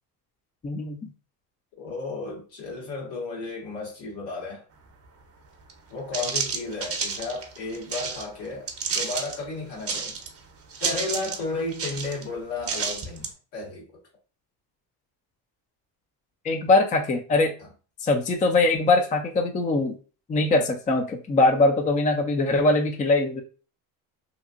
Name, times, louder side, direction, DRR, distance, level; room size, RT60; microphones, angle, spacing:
voice 1, 0.6-1.0 16.4-17.5 18.0-19.9 20.3-23.4, left 2 dB, 20° left, 0.4 m, -22 dB
voice 2, 1.8-4.6 5.9-10.2 10.8-13.8 17.6-17.7, left 3 dB, 85° left, 1.5 m, -33 dB
sound 1, 5.7-5.8 6.1-8.2 8.7-9.4 9.8-10.4 10.7-11.4 11.7-12.2 12.6-13.3, right 5 dB, 35° right, 0.7 m, -30 dB
2.9 x 2.5 x 2.4 m
cardioid pair, 105°, 41 cm